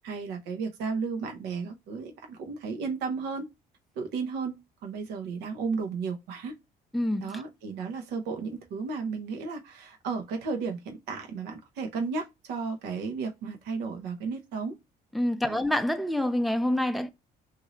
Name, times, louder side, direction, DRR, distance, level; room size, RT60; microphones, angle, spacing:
voice 1, 0.0-3.5 4.0-6.5 7.2-14.8 15.5-15.6, right 5 dB, 85° right, 0.8 m, -34 dB
voice 2, 6.9-7.3 15.1-17.1, left 1 dB, ahead, 0.4 m, -27 dB
3.1 x 2.6 x 2.5 m
cardioid pair, 110°, 17 cm